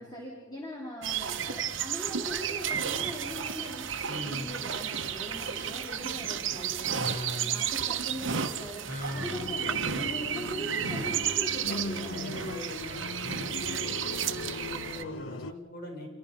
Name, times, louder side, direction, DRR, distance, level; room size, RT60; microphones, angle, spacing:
voice 1, 0.0-12.3, equal, 20° left, -2 dB, 3.5 m, -41 dB
sound 1, 1.0-15.0, right 8 dB, 75° right, 1.2 m, -32 dB
voice 2, 4.1-4.5 7.0-7.7 8.9-9.5 11.7-16.1, left 1 dB, 50° left, 1 dB, 6.3 m, -40 dB
sound 2, 9.1-15.5, left 3 dB, 80° left, 0.7 m, -39 dB
27.5 x 24.5 x 5.3 m, 1.4 s
head